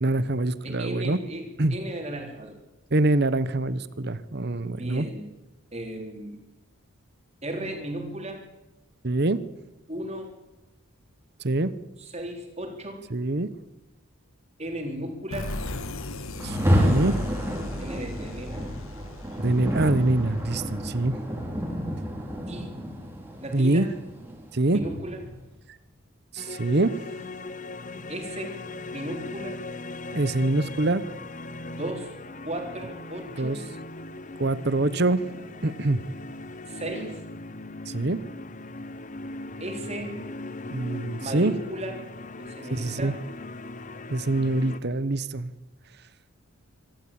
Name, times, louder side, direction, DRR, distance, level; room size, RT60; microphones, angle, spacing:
voice 1, 0.0-1.2 1.6-1.7 2.9-5.1 9.0-9.4 11.4-11.7 13.1-13.5 16.4-17.1 19.4-21.2 23.5-23.9 24.5-24.8 26.3-26.9 30.1-31.0 33.4-33.6 34.4-35.2 35.6-36.0 37.9-38.2 40.7-41.5 42.7-43.1 44.1-45.5, right 2 dB, 50° right, 15 dB, 0.9 m, -24 dB
voice 2, 0.6-2.6 4.6-5.3 5.7-6.4 7.4-8.4 9.9-10.3 12.0-13.0 14.6-15.5 17.8-18.7 22.5-22.7 23.4-23.9 24.7-25.2 28.1-28.5 28.9-29.6 31.7-32.1 32.4-33.6 36.7-37.2 39.6-40.2 41.2-42.0 42.4-43.2, right 1 dB, 30° right, 2 dB, 3.9 m, -35 dB
sound 1, 15.3-20.8, left 1 dB, 70° left, 1.5 m, -36 dB
Rain, 16.4-25.4, equal, 10° right, 3.5 m, -29 dB
sound 2, 26.4-44.8, left 2 dB, 35° left, 0.9 m, -39 dB
25.5 x 13.0 x 8.8 m, 0.98 s
head